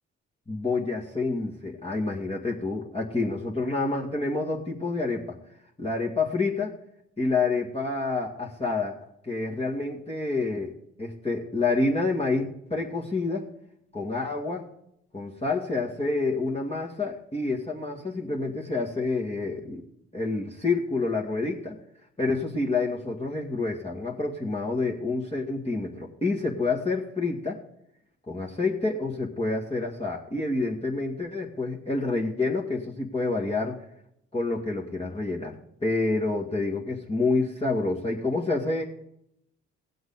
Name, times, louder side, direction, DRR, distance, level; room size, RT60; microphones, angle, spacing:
voice 1, 0.5-5.4 5.8-6.7 7.2-9.0 9.2-13.5 13.9-14.6 15.1-19.8 20.1-21.8 22.2-27.6 28.3-33.8 34.3-38.8, left 3 dB, 15° left, -3 dB, 2.1 m, -28 dB
18.0 x 7.8 x 4.0 m, 0.75 s
hypercardioid pair, 45°, 34 cm